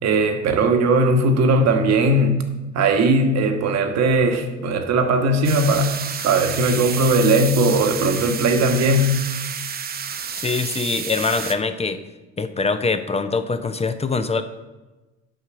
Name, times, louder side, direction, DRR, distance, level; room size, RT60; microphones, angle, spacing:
voice 1, 0.0-2.4 2.7-5.9 6.2-9.1, right 2 dB, 45° right, 6 dB, 1.3 m, -18 dB
sound 1, 5.4-11.6, right 7 dB, 25° right, 0.7 m, -30 dB
voice 2, 10.3-12.0 12.4-14.4, left 4 dB, 20° left, 10 dB, 0.7 m, -23 dB
8.0 x 5.6 x 6.0 m, 1.1 s
hypercardioid pair, 65°, 35 cm